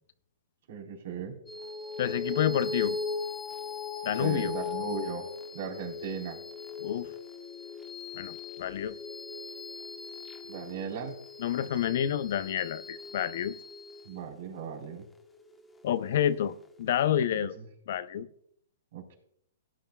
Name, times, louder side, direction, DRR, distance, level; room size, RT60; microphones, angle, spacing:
voice 1, 0.7-1.4 4.2-5.2 5.5-6.4 10.5-11.2 14.0-15.1 17.4-17.6 18.9-19.1, right 6 dB, 65° right, 1 dB, 4.2 m, -37 dB
sound 1, 1.5-16.2, left 4 dB, 10° left, 1.2 m, -39 dB
voice 2, 2.0-3.0 4.0-4.5 6.8-7.1 8.1-9.0 11.4-13.5 15.8-17.6 17.9-18.3, left 10 dB, 60° left, 14 dB, 0.6 m, -29 dB
17.5 x 10.5 x 2.4 m, 0.69 s
hypercardioid pair, 130°, 0 cm